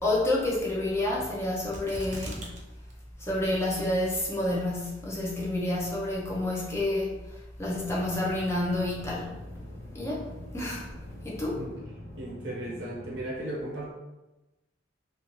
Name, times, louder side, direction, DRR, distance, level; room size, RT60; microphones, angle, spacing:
voice 1, 0.0-2.6 3.2-9.4 9.9-10.3 10.5-10.9 11.2-11.6, left 1 dB, 15° left, -5 dB, 0.6 m, -29 dB
sound 1, 1.7-2.6 2.9-3.0 3.6-4.0 4.6-4.7, right 1 dB, 40° right, 0.5 m, -40 dB
sound 2, 7.7-13.2, left 1 dB, 65° left, 0.9 m, -45 dB
voice 2, 12.2-13.9, right 1 dB, 70° right, -4 dB, 0.8 m, -36 dB
2.6 x 2.4 x 2.9 m, 1.0 s
head